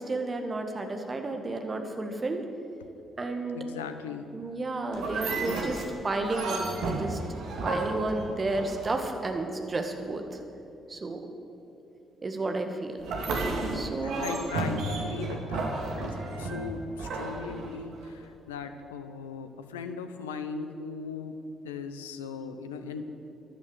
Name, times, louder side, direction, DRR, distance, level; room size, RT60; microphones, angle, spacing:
voice 1, 0.0-2.4 3.2-3.6 4.3-7.2 7.6-10.4 10.9-11.2 12.2-13.0 13.7-14.4, right 2 dB, 30° right, 5 dB, 1.8 m, -32 dB
voice 2, 3.5-4.3 14.0-21.4 21.6-23.1, left 5 dB, 75° left, 9 dB, 0.7 m, -38 dB
sound 1, 4.9-9.2 13.0-18.1, right 2 dB, 60° right, 2.0 m, -33 dB
14.0 x 11.5 x 6.8 m, 2.8 s
figure-of-eight pair, 40°, 0 cm